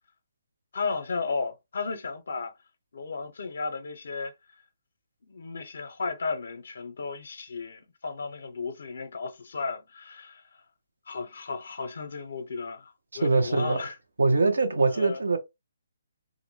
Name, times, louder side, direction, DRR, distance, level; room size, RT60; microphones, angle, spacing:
voice 1, 0.7-2.5 2.9-4.3 5.2-10.4 11.1-14.0 14.9-15.2, left 4 dB, 65° left, 0.5 m, -34 dB
voice 2, 13.1-13.8 14.2-15.4, right 3 dB, 85° right, 0.8 m, -23 dB
2.5 x 2.1 x 3.0 m
hypercardioid pair, 165°, 0 cm